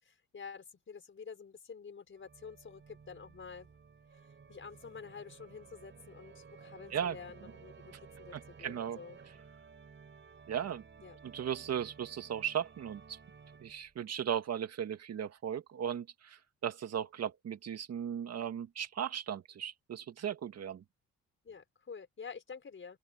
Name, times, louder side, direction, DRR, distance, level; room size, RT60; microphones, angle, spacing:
voice 1, 0.0-3.7 4.1-9.2 11.0-11.2 21.4-23.0, left 6 dB, 40° left, 5.3 m, -49 dB
Organ, 2.2-14.0, right 5 dB, 40° right, 5.9 m, -55 dB
voice 2, 8.6-9.0 10.5-10.8 11.2-13.2 13.6-20.8, right 9 dB, 55° right, 2.1 m, -37 dB
open air
cardioid pair, 90°, 30 cm